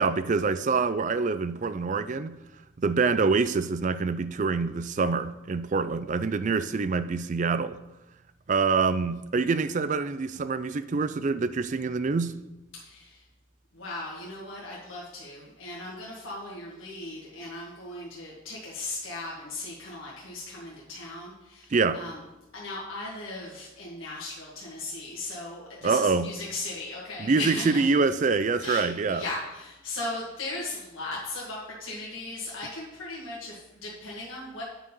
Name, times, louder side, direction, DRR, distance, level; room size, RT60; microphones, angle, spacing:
voice 1, 0.0-2.4 2.8-7.8 8.5-12.3 21.7-22.0 25.8-26.3 27.2-29.2, right 4 dB, 35° right, 0.3 m, -25 dB
voice 2, 12.7-13.2 13.7-22.2 22.5-28.0 28.6-34.6, left 2 dB, 75° left, 1.7 m, -37 dB
8.8 x 4.8 x 5.4 m
head